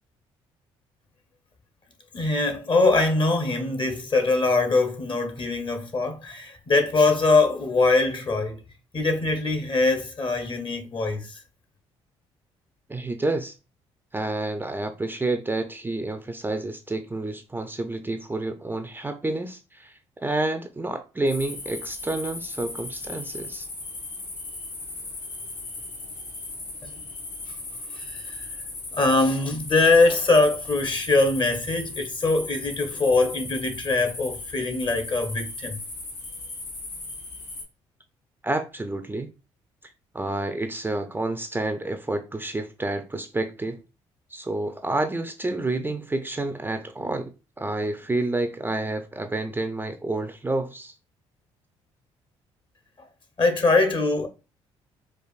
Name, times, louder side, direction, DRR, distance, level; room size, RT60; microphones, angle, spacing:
voice 1, 2.1-8.6 8.9-11.4 26.8-27.0 27.9-28.4 28.9-35.8 53.4-54.3, left 3 dB, 40° left, 1.0 m, -22 dB
voice 2, 12.9-13.5 14.1-23.7 38.4-39.3 40.1-43.8 44.3-50.9, right 2 dB, 15° right, 0.5 m, -29 dB
sound 1, 21.3-37.6, left 2 dB, 75° left, 1.8 m, -37 dB
4.6 x 2.5 x 2.4 m
hypercardioid pair, 55°, 13 cm